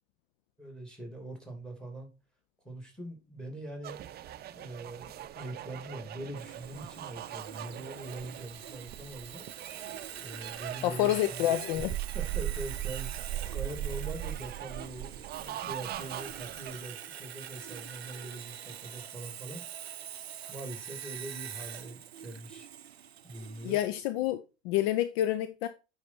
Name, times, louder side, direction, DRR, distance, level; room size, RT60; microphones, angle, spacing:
voice 1, 0.6-2.1 2.6-4.0 4.5-9.4 10.2-11.5 12.1-19.6 20.5-22.7 23.2-23.8, right 1 dB, 5° left, 2.7 m, -43 dB
sound 1, 3.8-16.8, right 13 dB, 30° right, 0.6 m, -40 dB
Sawing, 6.4-23.9, right 9 dB, 80° right, 0.6 m, -44 dB
voice 2, 10.8-11.9 23.6-25.7, left 13 dB, 55° left, 0.6 m, -28 dB
9.2 x 4.2 x 4.2 m
figure-of-eight pair, 70°, 31 cm